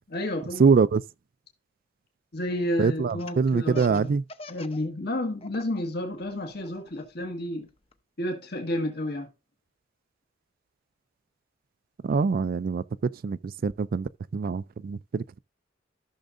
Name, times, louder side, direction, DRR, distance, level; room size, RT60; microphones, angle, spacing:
voice 1, 0.1-0.6 2.3-4.1 4.5-7.7 8.2-9.3, left 1 dB, 60° left, 1.6 m, -31 dB
voice 2, 0.6-1.0 2.8-4.2 12.0-12.8 13.2-15.2, right 5 dB, 50° right, 0.3 m, -24 dB
Laughter, 3.1-4.8 5.1-5.8 6.2-7.9, left 3 dB, 30° left, 0.7 m, -44 dB
14.0 x 6.4 x 2.6 m
head